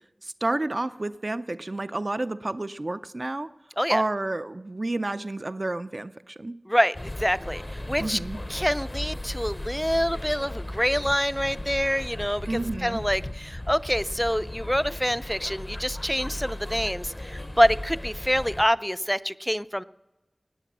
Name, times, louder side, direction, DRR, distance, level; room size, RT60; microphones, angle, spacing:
voice 1, 0.2-3.5 3.9-6.5 8.0-8.4 12.5-13.0, right 2 dB, 55° right, 12 dB, 0.5 m, -30 dB
voice 2, 6.7-8.2 8.5-19.8, equal, 5° left, 15 dB, 0.4 m, -26 dB
sound 1, 6.9-18.7, left 1 dB, 40° left, 0.7 m, -36 dB
18.0 x 9.2 x 6.0 m, 1.0 s
wide cardioid pair, 45°, 0 cm